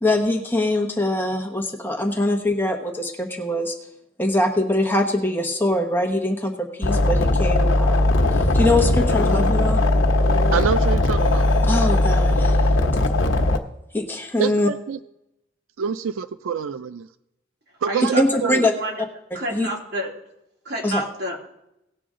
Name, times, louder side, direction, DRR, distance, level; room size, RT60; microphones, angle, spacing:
voice 1, 0.0-3.7 4.2-9.8 11.6-12.7 13.9-14.7 18.0-18.7 19.5-19.7 20.8-21.0, left 1 dB, 10° left, 2 dB, 1.1 m, -23 dB
sound 1, 6.8-13.6, left 2 dB, 85° left, 0.9 m, -18 dB
voice 2, 10.5-11.5 14.4-15.0 15.8-17.1 17.8-18.6, right 7 dB, 90° right, 12 dB, 0.4 m, -26 dB
voice 3, 17.9-19.0 19.3-20.1 20.6-21.4, right 1 dB, 55° right, -2 dB, 2.7 m, -29 dB
18.5 x 6.8 x 3.7 m, 0.85 s
head